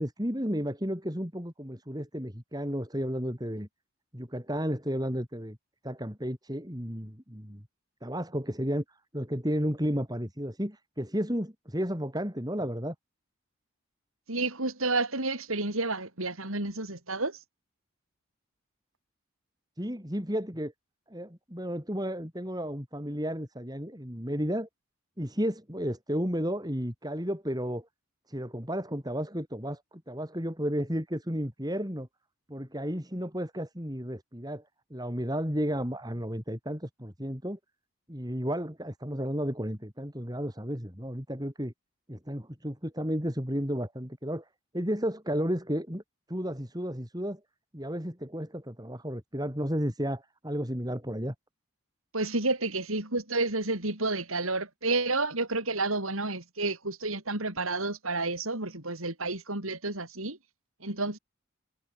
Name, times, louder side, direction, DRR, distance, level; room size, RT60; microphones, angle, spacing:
voice 1, 0.0-3.7 4.1-5.6 5.8-7.6 8.0-12.9 19.8-20.7 21.1-24.7 25.2-27.9 28.3-32.1 32.5-34.6 34.9-37.6 38.1-41.7 42.1-44.5 44.7-46.0 46.3-47.4 47.7-51.3, equal, 20° right, 5.7 m, -33 dB
voice 2, 14.3-17.4 52.1-60.4 60.8-61.2, right 2 dB, 80° right, 6.9 m, -30 dB
head